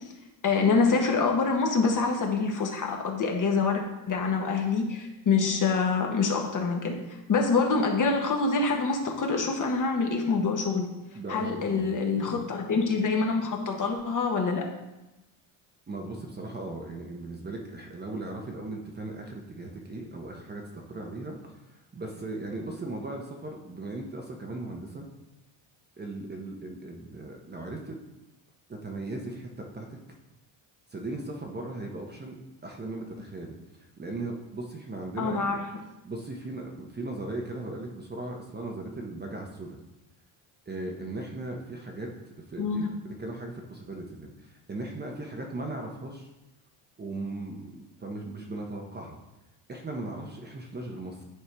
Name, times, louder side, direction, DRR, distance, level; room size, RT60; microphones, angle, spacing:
voice 1, 0.4-7.0 7.3-10.9 11.3-14.6 35.2-35.6 42.6-42.9, left 4 dB, 40° left, 2 dB, 1.1 m, -26 dB
voice 2, 11.1-12.3 15.9-20.6 20.9-25.0 26.0-28.0 28.7-30.0 30.9-33.6 34.0-35.6 36.0-39.8 40.7-42.1 42.5-46.3 47.0-49.2 49.7-51.2, right 2 dB, 20° right, 1 dB, 0.7 m, -38 dB
9.6 x 4.4 x 3.4 m, 0.98 s
cardioid pair, 135°, 48 cm